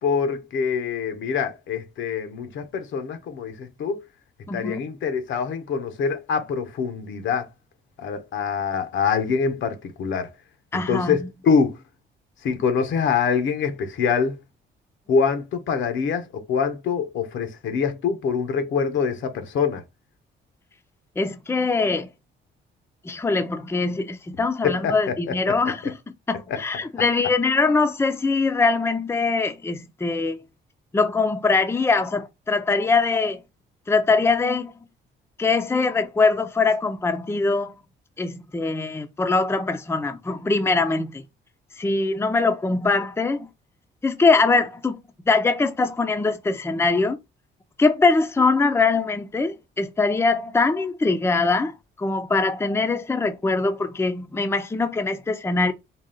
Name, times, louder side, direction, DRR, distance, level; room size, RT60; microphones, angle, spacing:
voice 1, 0.0-4.0 4.5-7.5 8.0-10.3 10.7-11.8 12.4-14.4 15.1-19.8 24.6-25.2 25.5-25.6 26.5-26.6, left 6 dB, 75° left, 0.9 m, -25 dB
voice 2, 4.5-4.8 10.7-11.3 21.2-22.1 23.0-26.0 26.3-30.4 30.9-33.4 33.9-34.7 35.4-37.7 38.2-41.2 41.8-43.5 44.0-45.0 45.3-47.2 47.8-55.7, left 3 dB, 10° left, 0.5 m, -22 dB
4.0 x 2.3 x 3.7 m
cardioid pair, 90°, 20 cm